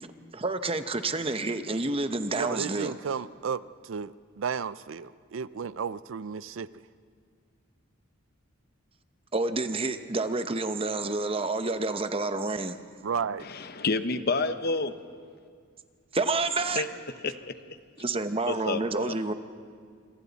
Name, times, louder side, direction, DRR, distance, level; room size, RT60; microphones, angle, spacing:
voice 1, 0.0-2.9 9.3-12.8 16.1-16.8 18.0-19.3, right 3 dB, 30° right, 9 dB, 0.8 m, -29 dB
voice 2, 2.4-6.7 13.0-13.5, right 6 dB, 70° right, 17 dB, 0.5 m, -33 dB
voice 3, 13.5-14.9 16.8-16.9 17.2-17.3 18.5-19.1, left 3 dB, 50° left, 10 dB, 0.9 m, -28 dB
26.5 x 25.5 x 4.1 m, 2.1 s
head